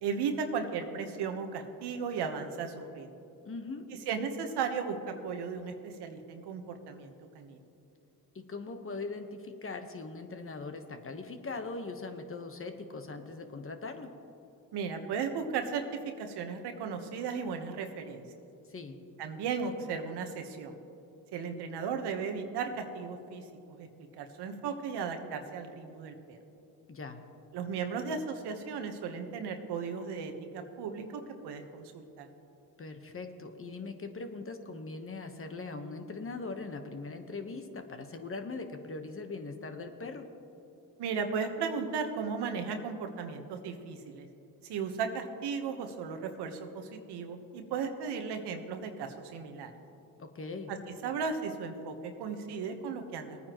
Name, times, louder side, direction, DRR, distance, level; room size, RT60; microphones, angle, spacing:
voice 1, 0.0-3.2 4.1-5.0 5.2-7.6 14.7-15.8 16.2-18.2 19.2-20.7 21.3-23.9 24.1-26.4 27.5-32.3 41.0-44.3 44.7-49.7 50.7-50.8 51.0-53.4, right 5 dB, 80° right, 5 dB, 1.3 m, -36 dB
voice 2, 3.4-3.9 8.3-14.1 18.7-19.0 26.9-27.2 32.8-40.2 50.2-50.7, left 3 dB, 35° left, 6 dB, 1.2 m, -41 dB
20.0 x 9.4 x 3.0 m, 2.8 s
cardioid pair, 75°, 40 cm